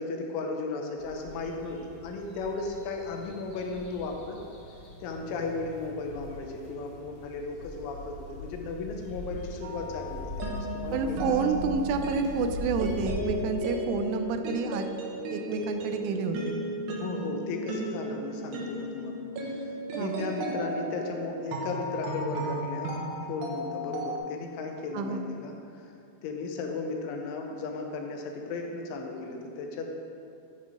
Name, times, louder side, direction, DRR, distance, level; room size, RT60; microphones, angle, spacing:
voice 1, 0.0-4.4 5.0-11.7 16.9-19.7 20.0-23.0 23.2-25.9 26.2-30.0, left 3 dB, 85° left, 2 dB, 3.3 m, -35 dB
sound 1, 1.0-13.1, left 1 dB, 60° left, 3.1 m, -42 dB
sound 2, 9.6-24.2, right 1 dB, 70° right, 3.1 m, -35 dB
voice 2, 10.9-14.9 15.1-16.6 20.0-20.3 24.9-25.3, right 4 dB, 90° right, 7 dB, 3.1 m, -29 dB
10.5 x 5.7 x 4.9 m, 2.6 s
omnidirectional pair, 5.4 m